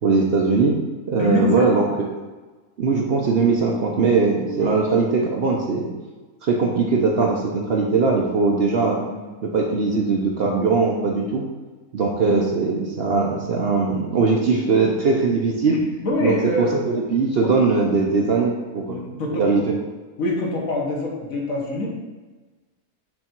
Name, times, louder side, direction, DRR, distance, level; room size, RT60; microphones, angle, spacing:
voice 1, 0.0-0.7 1.1-1.9 2.8-5.9 6.4-9.0 9.4-11.4 11.9-15.8 16.2-19.8, right 4 dB, 55° right, -1 dB, 0.7 m, -20 dB
voice 2, 1.1-1.9 4.5-4.7 9.1-9.3 16.0-16.7 18.2-18.3 18.9-19.6 20.2-21.9, left 1 dB, 70° left, -2 dB, 1.6 m, -25 dB
6.5 x 3.5 x 4.4 m, 1.3 s
omnidirectional pair, 1.5 m